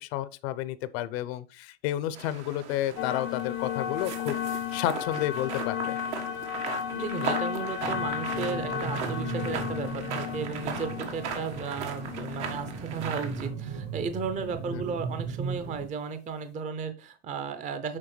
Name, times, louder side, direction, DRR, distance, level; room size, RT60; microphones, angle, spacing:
voice 1, 0.0-6.0 14.7-14.8, left 13 dB, 70° left, 0.7 m, -31 dB
sound 1, 2.1-13.5, right 6 dB, 85° right, 1.5 m, -38 dB
sound 2, 3.0-13.8, left 10 dB, 35° left, 0.5 m, -34 dB
voice 2, 6.9-18.0, right 5 dB, 25° right, 0.5 m, -34 dB
sound 3, 7.8-15.9, right 4 dB, 40° right, 0.9 m, -37 dB
7.4 x 4.8 x 3.1 m
supercardioid pair, 110°, 33 cm